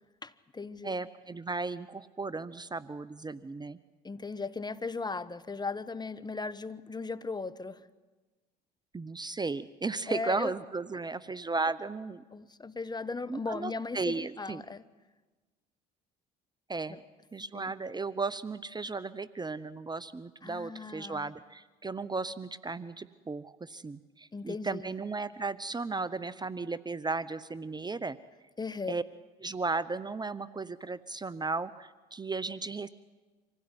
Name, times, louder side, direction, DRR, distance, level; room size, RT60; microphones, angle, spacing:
voice 1, 0.2-0.9 4.0-7.9 10.1-10.5 12.3-14.8 16.9-17.0 17.5-17.7 20.4-21.3 24.3-24.9 28.6-28.9, left 4 dB, 20° left, 13 dB, 1.1 m, -37 dB
voice 2, 0.8-3.8 8.9-12.2 13.3-14.6 16.7-17.0 17.3-28.2 28.9-29.0 29.4-32.9, right 3 dB, 20° right, 16 dB, 0.8 m, -35 dB
26.0 x 16.5 x 9.8 m, 1.3 s
hypercardioid pair, 60°, 20 cm